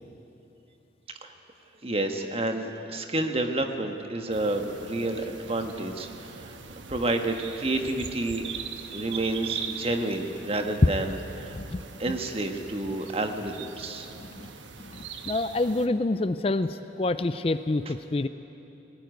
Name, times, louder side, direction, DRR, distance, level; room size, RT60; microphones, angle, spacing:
voice 1, 1.8-6.6 6.9-8.4 8.9-11.5 12.0-14.1, right 2 dB, 30° right, 5 dB, 1.4 m, -29 dB
sound 1, 4.3-15.9, right 6 dB, 80° right, 1.2 m, -41 dB
voice 2, 11.5-12.2 14.4-14.5 14.8-18.3, left 2 dB, 30° left, 12 dB, 0.4 m, -28 dB
19.5 x 17.5 x 9.4 m, 3.0 s
head